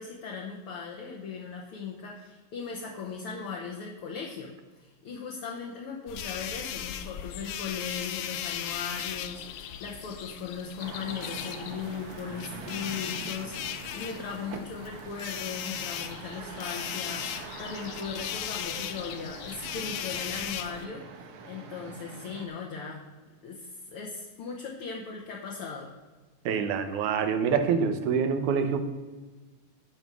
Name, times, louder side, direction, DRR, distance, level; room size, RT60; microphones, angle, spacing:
voice 1, 0.0-4.5 4.8-21.1 21.4-23.1 23.4-25.9, left 5 dB, 60° left, -1 dB, 1.7 m, -38 dB
sound 1, 6.1-20.9, left 10 dB, 85° left, 1.3 m, -37 dB
sound 2, 10.8-22.5, right 4 dB, 65° right, 1.4 m, -44 dB
voice 2, 26.5-28.8, right 6 dB, 85° right, 8 dB, 2.4 m, -26 dB
11.5 x 5.4 x 6.0 m, 1.3 s
omnidirectional pair, 3.4 m